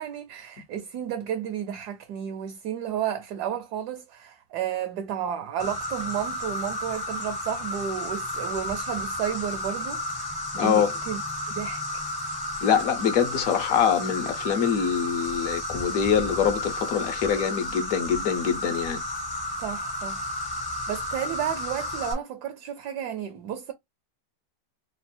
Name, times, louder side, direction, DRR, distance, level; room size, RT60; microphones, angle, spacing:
voice 1, 0.0-11.2 11.6-12.0 19.6-20.3 20.7-23.7, right 9 dB, 70° right, 1.1 m, -32 dB
Insect, 5.6-22.1, left 1 dB, 20° left, 0.6 m, -32 dB
voice 2, 10.6-10.9 12.6-19.0, left 8 dB, 65° left, 0.9 m, -24 dB
3.2 x 2.3 x 4.3 m
omnidirectional pair, 2.0 m